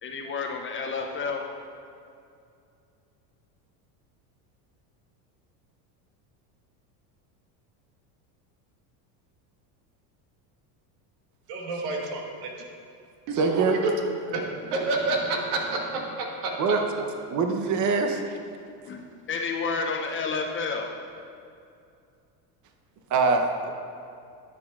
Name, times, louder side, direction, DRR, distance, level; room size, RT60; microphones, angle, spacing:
voice 1, 0.0-1.4 18.9-19.0 19.3-20.9, left 4 dB, 25° left, 2 dB, 0.5 m, -30 dB
voice 2, 11.5-12.5 13.3-13.8 14.2-16.5, right 3 dB, 80° right, 0 dB, 1.5 m, -29 dB
voice 3, 13.3-13.8 16.6-18.4 23.1-23.7, right 4 dB, 40° right, 5 dB, 0.8 m, -24 dB
11.5 x 7.3 x 2.4 m, 2.5 s
supercardioid pair, 115°, 47 cm